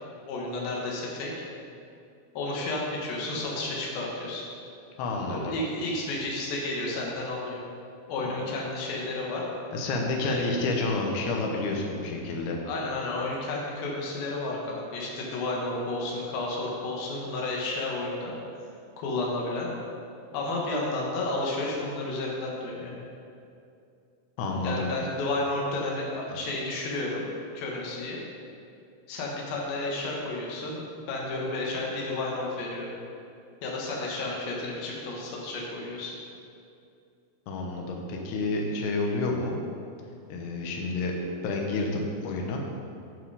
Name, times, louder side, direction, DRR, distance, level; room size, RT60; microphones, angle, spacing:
voice 1, 0.3-1.4 2.3-4.4 5.3-7.6 8.1-9.4 10.3-10.4 12.6-18.3 19.0-19.7 20.3-22.9 24.6-27.2 27.5-28.2 29.1-32.9 33.6-36.1, left 2 dB, 70° left, -3 dB, 3.2 m, -32 dB
voice 2, 5.0-5.6 9.7-12.6 24.4-24.9 26.3-26.4 37.5-39.6 40.3-41.1 41.4-42.6, left 2 dB, 85° left, 1 dB, 3.1 m, -29 dB
11.5 x 5.1 x 4.8 m, 2.5 s
omnidirectional pair, 4.5 m